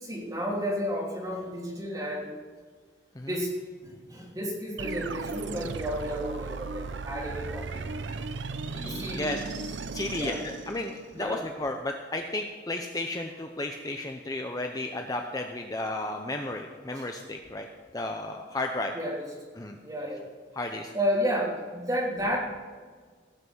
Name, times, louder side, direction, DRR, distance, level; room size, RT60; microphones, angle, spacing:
voice 1, 0.0-2.3 3.2-3.5 3.8-7.8 8.6-9.3 10.1-10.4 11.1-11.4 16.9-17.1 18.9-19.3 19.8-20.3 20.9-22.4, equal, 20° right, -3 dB, 3.0 m, -32 dB
sound 1, 4.8-11.2, right 4 dB, 85° right, 0.7 m, -36 dB
voice 2, 8.7-17.7 17.9-18.9 19.6-19.8 20.5-20.9, left 2 dB, 20° left, 3 dB, 0.7 m, -33 dB
17.0 x 5.8 x 8.0 m, 1.6 s
head